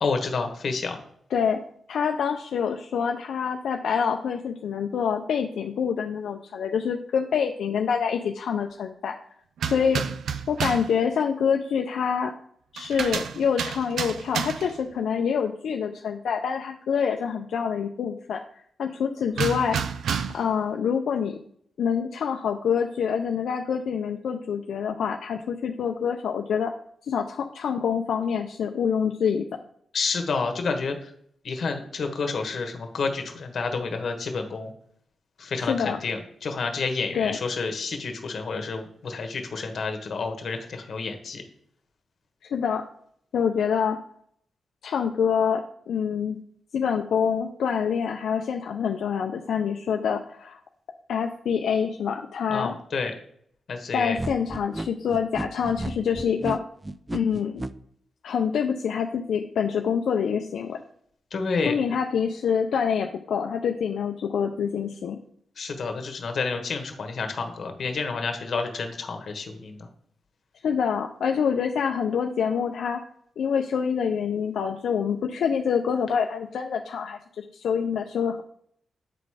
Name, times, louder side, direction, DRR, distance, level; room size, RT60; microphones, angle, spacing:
voice 1, 0.0-1.0 29.9-31.0 31.4-34.7 35.4-41.4 52.5-53.1 53.7-54.2 61.3-61.8 65.6-69.9, left 4 dB, 60° left, 5 dB, 1.4 m, -29 dB
voice 2, 1.9-9.2 9.6-10.0 10.5-12.3 12.7-18.4 18.8-19.8 20.3-21.4 21.8-26.7 27.1-29.5 35.6-36.0 37.1-37.4 42.5-42.8 43.3-44.0 44.8-46.4 46.7-50.6 51.1-52.7 53.9-56.6 57.1-57.7 58.2-60.8 61.7-65.2 70.6-73.0 73.4-78.4, left 7 dB, 80° left, 3 dB, 0.5 m, -26 dB
sound 1, 9.6-11.0 12.8-14.8 19.4-20.5, right 7 dB, 85° right, 0.4 m, -30 dB
sound 2, 54.2-57.7, right 2 dB, 15° right, 0.4 m, -33 dB
8.3 x 4.0 x 4.9 m, 0.67 s
cardioid pair, 90°, 0 cm